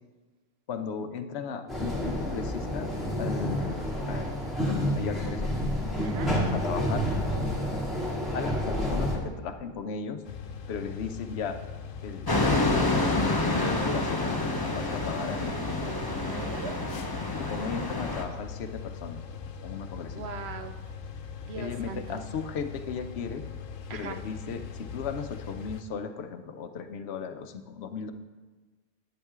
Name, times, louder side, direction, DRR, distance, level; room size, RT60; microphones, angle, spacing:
voice 1, 0.7-2.9 3.2-5.5 6.5-7.1 8.3-10.2 10.7-11.6 12.0-12.3 12.6-15.6 17.3-19.2 19.6-20.2 21.5-23.5 23.9-28.1, left 6 dB, 60° left, 8 dB, 0.9 m, -36 dB
sound 1, 1.7-9.2, equal, ahead, 2.0 m, -29 dB
voice 2, 6.0-6.3 15.8-16.8 20.1-20.8 21.4-22.3 23.9-24.2, right 6 dB, 60° right, 8 dB, 0.9 m, -40 dB
sound 2, 10.2-25.8, left 6 dB, 90° left, 1.1 m, -41 dB
sound 3, 12.3-18.2, left 2 dB, 20° left, 0.7 m, -28 dB
11.0 x 8.0 x 3.6 m, 1.3 s
omnidirectional pair, 1.3 m